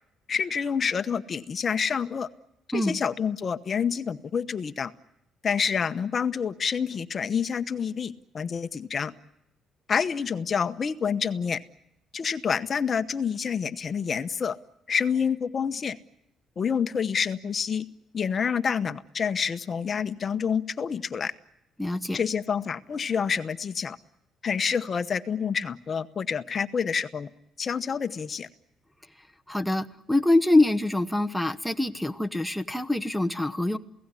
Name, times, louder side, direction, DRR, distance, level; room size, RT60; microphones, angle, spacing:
voice 1, 0.3-2.3 2.7-4.9 5.4-9.1 9.9-11.6 12.1-14.6 14.9-16.0 16.6-17.8 18.1-21.3 22.1-24.0 24.4-27.3 27.6-28.5, left 6 dB, 45° left, 11 dB, 1.0 m, -28 dB
voice 2, 21.8-22.2 29.5-33.8, left 2 dB, ahead, 6 dB, 1.1 m, -24 dB
28.5 x 17.5 x 9.8 m, 0.86 s
cardioid pair, 95°, 0 cm